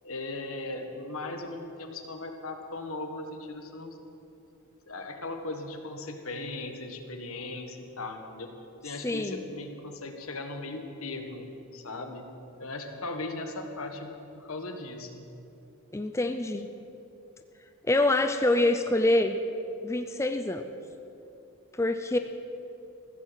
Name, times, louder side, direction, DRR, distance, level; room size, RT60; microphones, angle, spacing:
voice 1, 0.0-4.0 4.9-8.5 8.8-12.3 12.6-15.3, left 2 dB, 75° left, 5 dB, 1.5 m, -38 dB
voice 2, 9.0-9.4 15.9-16.7 17.8-19.4 19.8-20.6 21.7-22.2, left 2 dB, 15° left, 7 dB, 0.4 m, -25 dB
15.0 x 14.5 x 5.8 m, 2.9 s
head